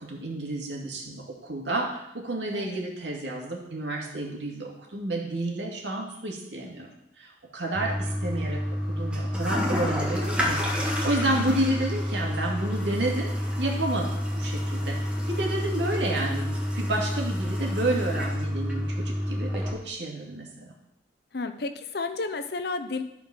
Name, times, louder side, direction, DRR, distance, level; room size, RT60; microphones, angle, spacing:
voice 1, 0.0-6.9 7.2-8.6 8.9-13.3 13.6-15.0 15.3-20.7, right 1 dB, 80° right, -1 dB, 2.3 m, -30 dB
Toilet flush, 7.7-19.7, equal, 5° right, 1.5 m, -29 dB
voice 2, 11.2-11.6 21.3-23.0, left 3 dB, 60° left, 8 dB, 0.8 m, -32 dB
12.5 x 4.5 x 6.0 m, 0.82 s
head